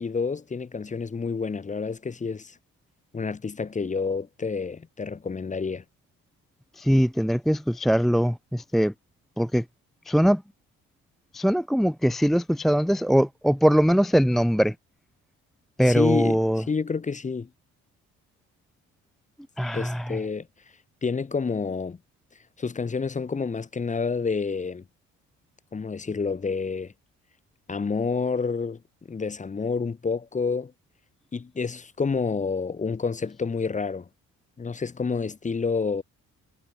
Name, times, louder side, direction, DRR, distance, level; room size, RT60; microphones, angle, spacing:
voice 1, 0.0-2.5 3.1-5.8 15.9-17.5 19.7-20.5 21.0-22.0 22.6-24.8 25.7-26.9 27.7-28.8 29.1-30.7 31.3-34.1 34.6-36.0, left 5 dB, 25° left, 1.0 m, -28 dB
voice 2, 6.8-8.9 9.4-9.6 10.1-10.4 11.3-14.7 15.8-16.6 19.6-20.2, equal, ahead, 0.4 m, -22 dB
cardioid pair, 90°, 30 cm